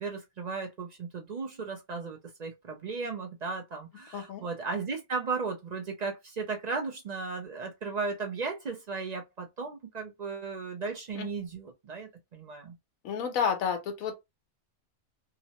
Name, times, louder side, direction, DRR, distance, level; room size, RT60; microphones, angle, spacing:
voice 1, 0.0-12.7, right 4 dB, 60° right, 0.4 m, -36 dB
voice 2, 4.1-4.4 11.1-11.3 13.0-14.2, left 7 dB, 85° left, 1.1 m, -30 dB
2.9 x 2.0 x 2.8 m
omnidirectional pair, 1.4 m